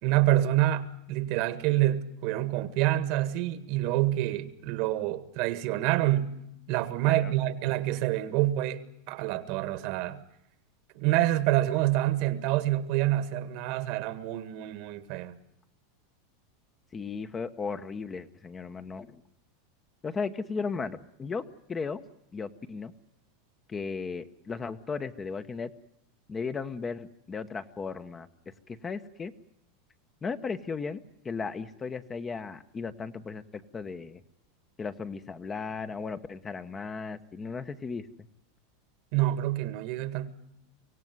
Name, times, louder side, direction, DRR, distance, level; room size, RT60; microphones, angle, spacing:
voice 1, 0.0-6.4 6.7-10.2 10.9-15.4 39.1-40.3, right 14 dB, 55° right, 1.8 m, -27 dB
voice 2, 16.9-19.2 20.0-22.0 22.3-22.9 23.7-25.7 26.3-28.3 28.7-29.3 30.2-34.2 34.8-38.1, left 5 dB, 20° left, 1.1 m, -36 dB
25.0 x 17.0 x 9.5 m
supercardioid pair, 130°, 0 cm